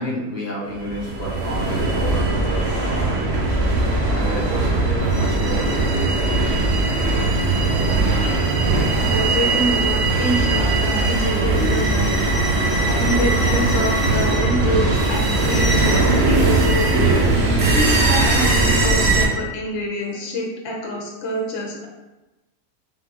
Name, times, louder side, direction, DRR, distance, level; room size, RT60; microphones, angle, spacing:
voice 1, 0.0-3.6 4.0-6.2 15.8-15.9, equal, 15° right, -7 dB, 0.5 m, -31 dB
sound 1, 0.8-19.3, right 2 dB, 55° right, 0.8 m, -19 dB
voice 2, 8.9-12.5 12.9-16.7 17.5-21.9, equal, 55° left, -1 dB, 0.9 m, -26 dB
3.9 x 3.8 x 2.9 m, 1.0 s
omnidirectional pair, 1.7 m